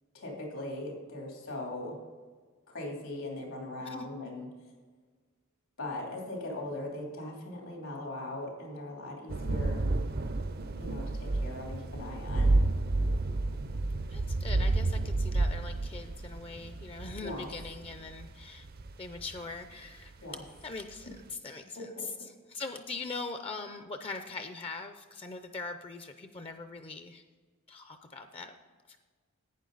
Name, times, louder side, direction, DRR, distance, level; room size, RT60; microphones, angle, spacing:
voice 1, 0.1-2.0 2.7-4.5 5.8-9.9 10.8-12.6 17.2-17.5 20.2-20.4 21.7-22.1, left 1 dB, 90° left, 0 dB, 3.0 m, -39 dB
sound 1, 9.3-19.4, right 2 dB, 45° right, 0.5 m, -30 dB
voice 2, 14.1-18.7 19.0-20.1 20.6-22.1 22.5-27.2 27.7-28.5 28.9-29.0, left 3 dB, 25° left, 8 dB, 0.4 m, -41 dB
11.5 x 8.9 x 3.9 m, 1.5 s
head